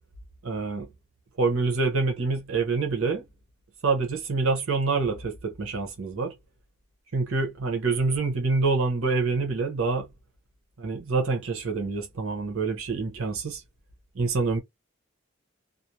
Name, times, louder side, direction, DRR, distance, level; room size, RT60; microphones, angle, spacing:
voice 1, 0.4-0.9 1.4-3.2 3.8-6.3 7.1-10.1 10.8-13.6 14.1-14.6, right 4 dB, 85° right, 0.8 m, -26 dB
2.5 x 2.0 x 2.8 m
head